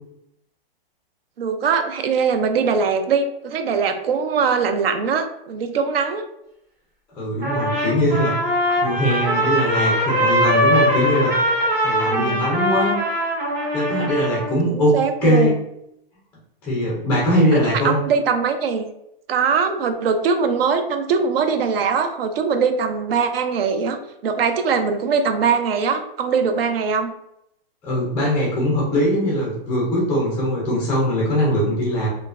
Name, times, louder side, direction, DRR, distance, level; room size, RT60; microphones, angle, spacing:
voice 1, 1.4-6.2 12.0-12.5 14.7-15.5 17.5-18.8 19.3-27.1, right 5 dB, 75° right, 7 dB, 0.5 m, -21 dB
voice 2, 7.1-8.4 8.8-11.5 11.8-13.0 13.7-15.5 16.6-18.0 27.8-32.1, equal, 5° left, -5 dB, 0.3 m, -21 dB
Trumpet, 7.4-14.5, equal, 40° right, 1.2 m, -21 dB
3.1 x 2.1 x 2.4 m, 0.80 s
hypercardioid pair, 145°, 30 cm